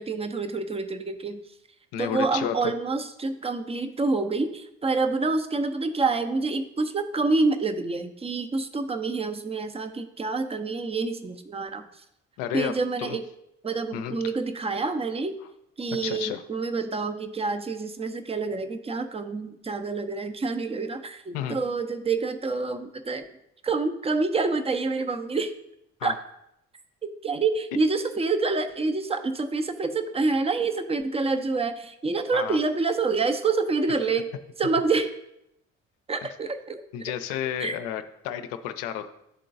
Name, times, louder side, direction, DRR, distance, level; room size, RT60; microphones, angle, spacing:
voice 1, 0.0-1.4 2.0-11.8 12.5-13.3 13.6-15.3 15.8-23.2 23.6-25.5 26.0-26.1 27.2-34.3 34.6-35.1 36.1-36.8 37.6-37.8, right 3 dB, 15° right, 9 dB, 0.5 m, -27 dB
voice 2, 1.9-2.7 12.4-12.7 13.0-13.2 13.9-14.2 16.0-16.4 21.3-21.6 26.0-26.2 32.3-32.6 36.9-39.1, left 10 dB, 65° left, 8 dB, 0.6 m, -31 dB
11.0 x 3.7 x 2.6 m, 0.80 s
hypercardioid pair, 50°, 37 cm